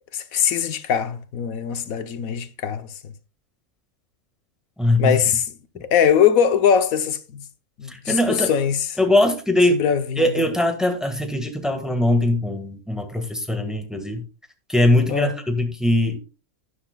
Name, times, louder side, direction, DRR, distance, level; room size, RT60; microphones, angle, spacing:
voice 1, 0.1-2.9 5.0-5.5 5.8-7.4 7.8-8.9 9.7-10.4 15.1-15.3, left 8 dB, 85° left, 1.3 m, -21 dB
voice 2, 4.8-5.2 7.9-8.5 9.0-9.8 10.2-14.2 14.7-16.2, left 1 dB, ahead, 1.5 m, -21 dB
12.5 x 9.6 x 2.3 m
omnidirectional pair, 1.4 m